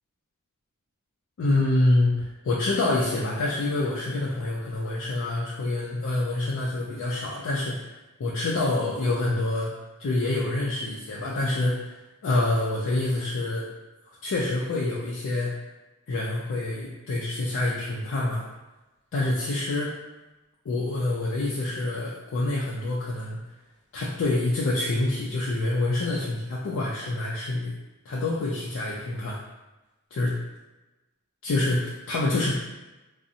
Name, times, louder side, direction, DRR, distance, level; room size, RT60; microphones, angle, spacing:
voice 1, 1.4-7.9 8.2-9.7 10.0-12.0 12.2-13.7 14.2-15.5 16.1-18.5 19.1-19.9 20.7-23.4 23.9-27.7 28.1-29.4 30.1-30.3 31.4-32.5, left 2 dB, 60° left, -5 dB, 0.4 m, -26 dB
2.6 x 2.0 x 2.5 m, 1.1 s
head